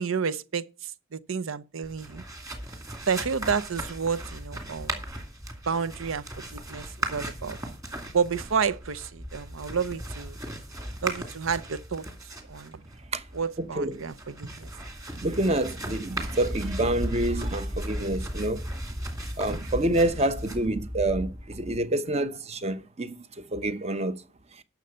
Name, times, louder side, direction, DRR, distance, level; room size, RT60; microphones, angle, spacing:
voice 1, 0.0-2.2 3.1-5.0 5.7-6.3 6.5-7.6 8.1-10.4 11.0-12.8 13.3-14.7, right 6 dB, 90° right, 0.7 m, -30 dB
sound 1, 1.8-21.8, right 1 dB, 20° right, 2.4 m, -36 dB
voice 2, 13.6-14.0 15.2-18.7 19.4-23.2 23.5-24.2, right 1 dB, 35° right, 0.8 m, -27 dB
11.5 x 6.5 x 5.6 m
head